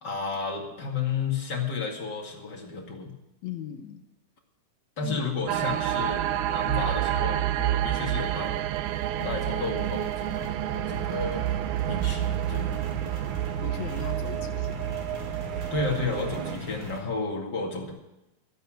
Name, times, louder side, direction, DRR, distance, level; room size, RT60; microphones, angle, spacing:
voice 1, 0.0-3.1 5.0-8.5 9.1-11.6 11.9-12.7 15.7-17.9, left 4 dB, 35° left, 0 dB, 2.4 m, -32 dB
voice 2, 3.4-4.0 5.0-5.4 9.2-9.4 11.2-11.3 13.0-13.3 13.6-14.9, left 9 dB, 70° left, 7 dB, 2.0 m, -39 dB
sound 1, 5.5-16.6, right 12 dB, 80° right, 2.0 m, -29 dB
sound 2, 8.0-17.0, left 2 dB, 50° right, 3.3 m, -42 dB
13.5 x 8.1 x 9.0 m, 0.94 s
omnidirectional pair, 3.7 m